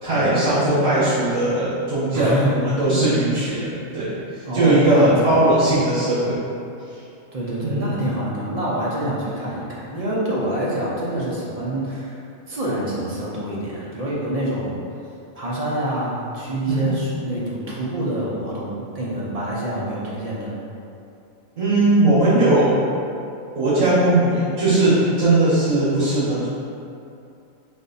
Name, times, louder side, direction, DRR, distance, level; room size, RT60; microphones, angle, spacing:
voice 1, 0.0-4.1 4.3-6.4 7.6-7.9 16.7-16.9 21.6-22.8 23.5-26.5, right 2 dB, 80° right, -14 dB, 1.7 m, -19 dB
voice 2, 2.1-2.6 4.4-5.4 7.3-12.2 12.5-14.8 15.4-20.5, right 1 dB, 40° right, -6 dB, 0.5 m, -26 dB
3.5 x 2.6 x 3.9 m, 2.6 s
omnidirectional pair, 1.4 m